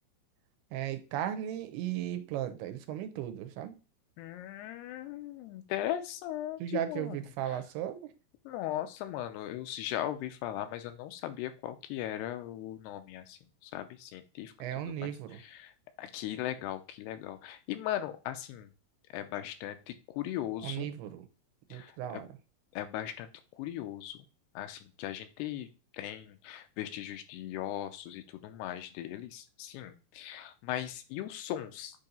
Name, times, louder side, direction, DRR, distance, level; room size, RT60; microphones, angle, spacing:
voice 1, 0.7-3.7 6.6-8.1 14.6-15.4 20.6-21.3 21.7-22.3, right 11 dB, 85° right, 2.7 m, -36 dB
voice 2, 4.2-7.6 8.5-14.5 14.9-15.7 16.0-18.7 19.1-20.9 21.7-22.2 22.7-23.3 23.6-24.2 24.6-25.7 25.9-32.1, left 12 dB, 85° left, 2.7 m, -38 dB
8.5 x 2.9 x 5.2 m
omnidirectional pair, 4.7 m